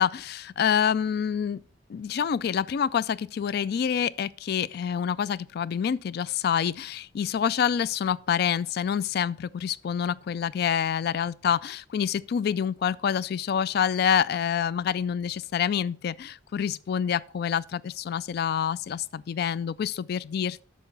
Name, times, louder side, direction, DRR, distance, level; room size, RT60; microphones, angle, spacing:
voice 1, 0.0-1.6 1.9-20.6, left 8 dB, 55° left, 0.3 m, -27 dB
8.4 x 5.8 x 5.4 m
head